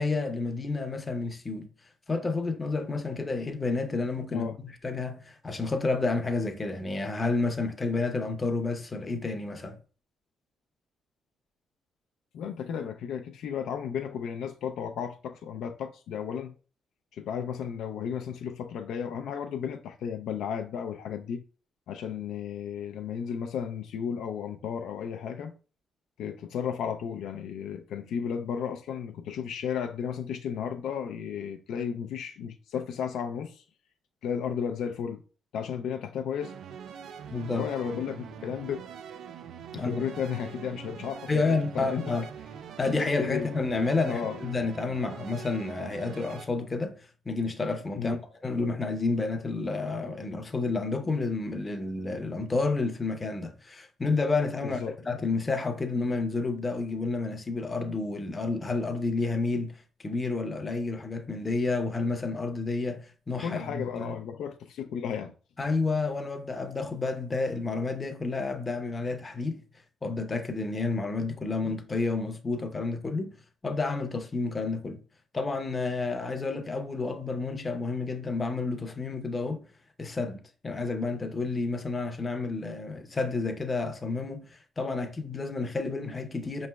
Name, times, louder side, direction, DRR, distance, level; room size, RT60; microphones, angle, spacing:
voice 1, 0.0-1.7 2.1-9.8 37.3-37.7 37.9-38.0 39.7-40.0 41.3-42.3 42.8-47.0 47.3-48.2 48.4-54.8 55.1-64.2 65.6-69.6 70.0-73.3 73.6-75.0 75.3-79.6 80.0-86.7, left 3 dB, 25° left, 0.6 m, -30 dB
voice 2, 12.3-16.6 17.1-21.4 21.9-25.5 26.2-33.6 34.2-35.2 35.5-36.5 37.5-38.8 39.7-42.1 42.8-42.9 43.2-43.5 44.1-44.4 48.0-48.2 54.6-54.9 63.4-65.3, left 7 dB, 80° left, 0.4 m, -34 dB
sound 1, 36.4-46.5, right 7 dB, 75° right, 0.3 m, -43 dB
5.0 x 3.1 x 2.2 m
cardioid pair, 90°, 0 cm